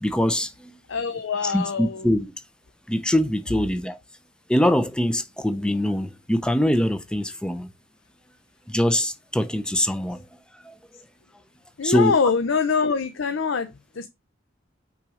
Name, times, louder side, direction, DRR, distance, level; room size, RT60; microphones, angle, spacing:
voice 1, 0.0-0.8 1.4-2.3 2.9-4.0 4.5-7.7 8.7-10.2 10.5-10.8 11.8-12.1, left 1 dB, 5° left, 0.5 m, -23 dB
voice 2, 0.9-2.1 11.8-14.1, left 5 dB, 85° left, 0.7 m, -24 dB
5.9 x 4.0 x 4.8 m
head